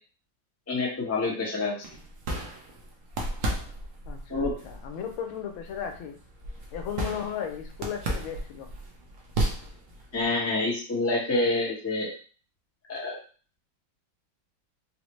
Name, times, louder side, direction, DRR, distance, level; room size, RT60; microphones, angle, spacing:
voice 1, 0.7-1.7 4.3-4.5 10.1-12.1 12.9-13.2, left 2 dB, 15° left, -5 dB, 0.5 m, -27 dB
sound 1, 1.8-10.3, right 1 dB, 65° right, 0.7 m, -34 dB
voice 2, 4.1-6.2 6.7-8.7, left 8 dB, 85° left, 4 dB, 1.4 m, -35 dB
4.0 x 2.1 x 3.0 m, 0.39 s
omnidirectional pair, 2.2 m